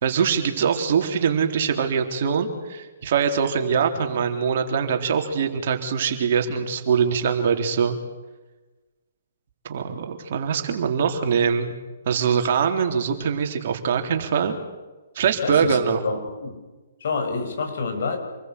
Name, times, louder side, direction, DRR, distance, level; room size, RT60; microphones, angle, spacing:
voice 1, 0.0-8.0 9.6-11.7 12.1-14.6 15.2-16.0, right 6 dB, 55° right, 4 dB, 3.7 m, -23 dB
voice 2, 15.4-15.8 16.0-16.6 17.0-18.2, left 4 dB, 60° left, 4 dB, 6.8 m, -27 dB
28.0 x 21.0 x 8.4 m, 1.2 s
figure-of-eight pair, 125°, 0 cm